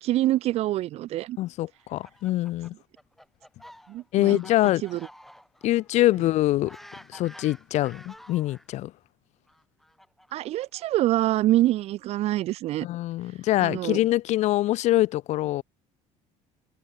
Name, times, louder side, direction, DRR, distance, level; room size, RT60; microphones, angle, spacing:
voice 1, 0.0-1.4 3.9-4.4 4.8-5.0 10.3-12.9 13.6-14.0, right 15 dB, 50° right, 0.4 m, -25 dB
voice 2, 1.4-2.7 4.1-4.8 5.6-6.8 7.1-8.9 12.8-15.6, left 15 dB, 60° left, 0.7 m, -24 dB
Fowl, 1.7-8.7 9.5-11.5, equal, ahead, 3.3 m, -50 dB
cardioid pair, 125°, 13 cm